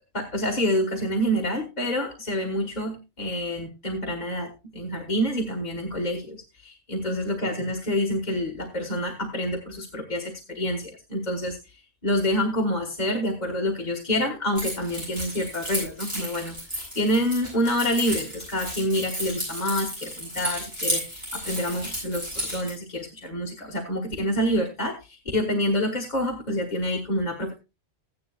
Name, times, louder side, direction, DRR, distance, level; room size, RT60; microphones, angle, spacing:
voice 1, 0.1-11.8 12.0-16.6 16.9-27.5, equal, 40° left, 0 dB, 1.6 m, -27 dB
Keys jangling, 14.6-22.7, equal, 25° right, 7.8 m, -33 dB
14.5 x 10.5 x 2.3 m, 0.25 s
omnidirectional pair, 1.1 m